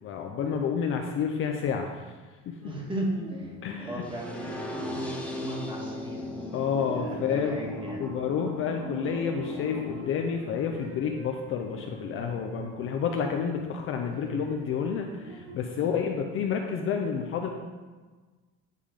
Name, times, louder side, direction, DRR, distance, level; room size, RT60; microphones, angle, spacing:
voice 1, 0.0-2.1 2.5-2.7 3.6-4.0 6.5-7.6 8.0-17.5, left 6 dB, 40° left, 3 dB, 0.5 m, -30 dB
voice 2, 2.6-6.6 6.9-8.0 15.8-16.0, right 1 dB, 15° right, -3 dB, 1.4 m, -36 dB
sound 1, 2.6-15.5, equal, 45° right, 1.7 m, -43 dB
sound 2, 4.0-10.0, left 1 dB, 5° left, 0.7 m, -39 dB
9.3 x 3.5 x 5.0 m, 1.4 s
cardioid pair, 170°, 32 cm